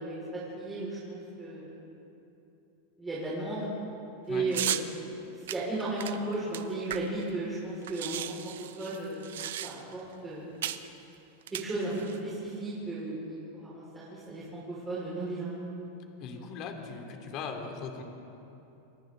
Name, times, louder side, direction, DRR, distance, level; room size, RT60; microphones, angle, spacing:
voice 1, 0.0-1.7 3.0-3.7 4.3-4.8 5.4-8.3 8.8-9.2 9.6-10.5 11.6-15.6 16.3-16.5, right 2 dB, 10° right, -9 dB, 5.1 m, -35 dB
sound 1, 4.5-4.9 5.5-7.3 7.5-7.6 7.8-10.0 10.6-10.9 11.4-12.2, right 11 dB, 85° right, 1.0 m, -35 dB
voice 2, 16.2-18.0, left 5 dB, 40° left, 3 dB, 2.7 m, -39 dB
29.0 x 24.5 x 3.9 m, 2.9 s
supercardioid pair, 155°, 0 cm